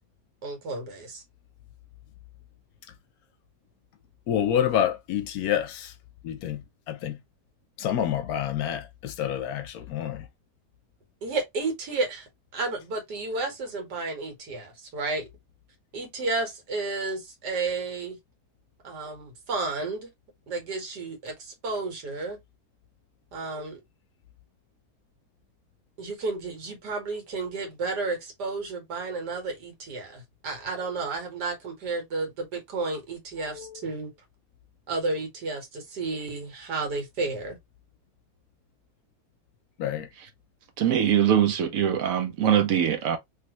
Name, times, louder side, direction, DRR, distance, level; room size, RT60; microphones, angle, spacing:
voice 1, 0.4-1.2 11.2-15.3 15.9-18.2 18.8-20.1 20.5-22.4 23.3-23.8 26.0-34.1 34.9-37.6, right 3 dB, 90° right, 1.8 m, -32 dB
voice 2, 4.3-6.0 6.2-7.2 7.8-10.3 33.4-33.8 39.8-40.1, left 10 dB, 70° left, 1.0 m, -28 dB
voice 3, 40.8-43.2, right 9 dB, 70° right, 0.9 m, -22 dB
3.3 x 2.5 x 2.9 m
omnidirectional pair, 1.7 m